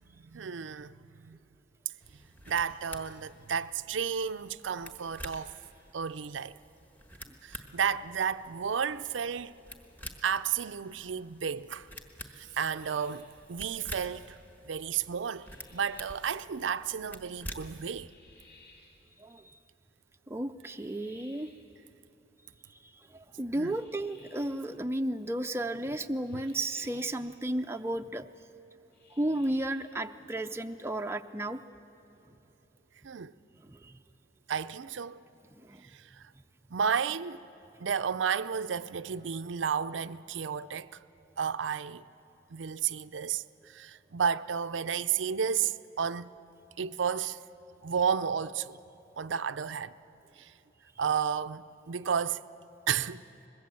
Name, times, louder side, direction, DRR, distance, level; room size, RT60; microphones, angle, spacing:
voice 1, 0.2-1.4 2.5-5.5 5.9-6.6 7.4-9.6 10.2-11.9 12.3-14.4 14.7-18.1 23.6-23.8 26.3-26.4 33.0-33.3 34.5-35.2 35.8-36.3 36.7-37.4 37.8-41.0 41.4-42.0 42.5-46.3 46.8-47.4 47.8-48.8 49.2-49.9 50.4-50.5 51.0-52.4 52.9-53.2, right 7 dB, 85° right, 0.5 m, -32 dB
sound 1, 2.0-17.9, equal, 10° left, 1.3 m, -49 dB
sound 2, 12.3-13.4 15.2-16.2 18.0-19.0 20.6-21.7 23.6-24.6 26.2-27.3 28.9-30.0, left 3 dB, 65° left, 3.8 m, -60 dB
voice 2, 19.2-19.6 20.3-21.5 23.1-28.3 29.1-31.6 33.6-34.0 35.6-35.8, right 1 dB, 15° right, 0.5 m, -33 dB
25.0 x 21.0 x 7.6 m
head